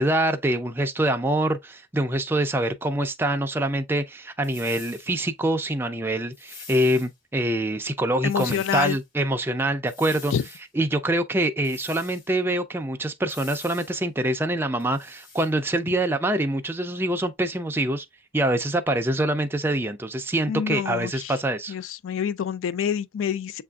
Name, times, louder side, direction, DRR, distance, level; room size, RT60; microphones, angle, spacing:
voice 1, 0.0-10.3 10.7-18.1 18.3-21.7, right 1 dB, 10° right, 0.3 m, -25 dB
sound 1, 4.4-5.1 6.3-7.1 8.3-9.0 9.9-10.6 11.6-12.3 13.3-14.0 14.8-15.5, left 4 dB, 40° left, 1.4 m, -44 dB
voice 2, 8.2-9.0 10.3-10.4 20.5-21.4 21.7-23.6, left 8 dB, 65° left, 0.3 m, -27 dB
7.5 x 2.5 x 2.2 m
head